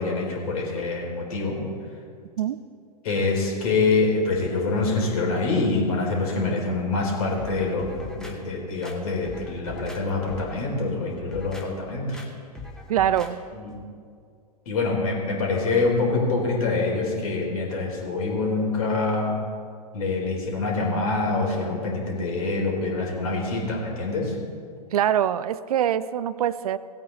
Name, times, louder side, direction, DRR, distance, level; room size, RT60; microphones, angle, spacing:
voice 1, 0.0-1.6 3.0-12.2 13.5-13.7 14.7-19.3 19.9-24.4, left 3 dB, 60° left, -1 dB, 3.6 m, -25 dB
sound 1, 7.4-8.4 8.8-10.0 10.3-10.6 11.1-11.7 12.1-12.3 12.6-13.3 13.7-13.8, left 2 dB, 5° left, 1.2 m, -40 dB
voice 2, 12.9-13.4 24.9-26.8, right 10 dB, 65° right, 15 dB, 0.5 m, -23 dB
17.0 x 8.6 x 3.9 m, 2.2 s
figure-of-eight pair, 110°, 21 cm